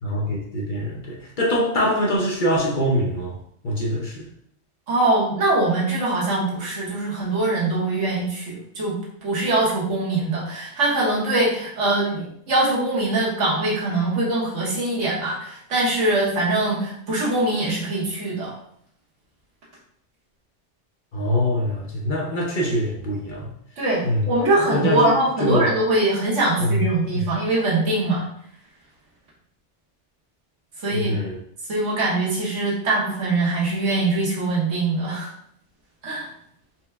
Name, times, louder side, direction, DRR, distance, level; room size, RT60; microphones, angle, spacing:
voice 1, 0.0-3.3 3.6-4.3 21.1-23.5 24.0-24.2 24.7-25.1 25.4-25.7 26.6-27.2 30.9-31.4, equal, 50° left, -3 dB, 0.8 m, -24 dB
voice 2, 4.9-18.5 23.8-28.3 30.8-31.1 31.7-35.3 36.0-36.3, right 2 dB, 80° right, -5 dB, 1.5 m, -22 dB
4.4 x 2.2 x 3.4 m, 0.69 s
omnidirectional pair, 1.2 m